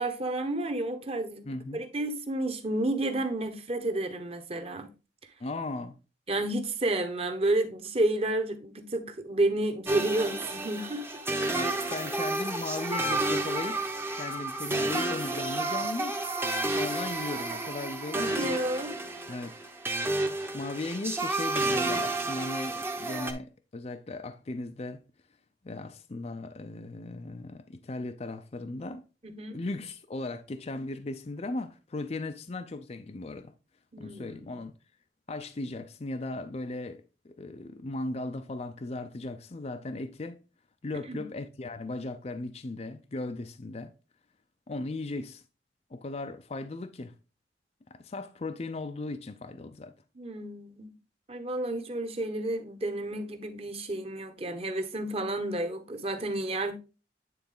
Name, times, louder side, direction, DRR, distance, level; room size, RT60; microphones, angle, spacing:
voice 1, 0.0-4.9 6.3-11.1 11.4-11.5 18.1-19.0 29.2-29.6 33.9-34.4 41.1-41.2 50.2-50.9 51.3-56.8, right 2 dB, 35° right, 1.2 m, -31 dB
voice 2, 1.4-1.8 5.4-6.0 11.5-13.8 14.2-16.2 16.7-18.5 19.3-19.5 20.5-25.0 25.6-29.0 29.5-33.5 34.0-34.7 35.3-40.4 40.8-43.9 44.7-45.4 45.9-47.1 47.9-49.9, left 2 dB, 35° left, 0.5 m, -37 dB
sound 1, 9.9-23.3, right 2 dB, 15° right, 0.8 m, -31 dB
9.4 x 4.0 x 3.8 m
head